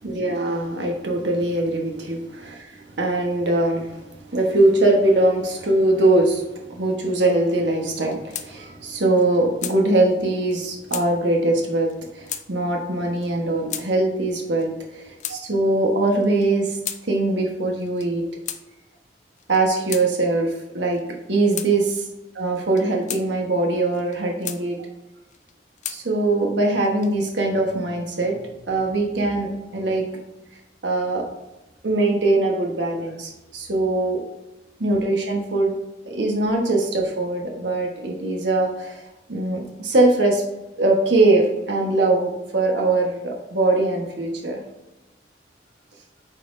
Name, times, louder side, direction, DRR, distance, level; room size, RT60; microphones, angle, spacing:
voice 1, 0.0-16.8 17.1-18.2 19.5-21.0 21.3-22.0 22.3-24.8 25.9-30.0 30.8-31.2 31.8-34.2 34.8-35.8 36.1-39.0 39.3-40.4 40.8-44.6, right 2 dB, 90° right, 1 dB, 1.2 m, -22 dB
sound 1, 7.9-8.5 8.8-8.9 9.2-9.8 10.5-10.6 10.9-11.1 11.9-12.0 12.3-12.5 13.2-13.3 13.7-13.9 14.6-15.4 16.2-17.0 17.8-18.1 18.5-18.6 19.4-20.1 20.9-21.1 21.5-21.7 22.6-23.2 23.9-24.6 25.3-26.0 26.8-27.3, left 10 dB, 40° left, 0.4 m, -33 dB
8.9 x 4.2 x 2.6 m, 1.0 s
head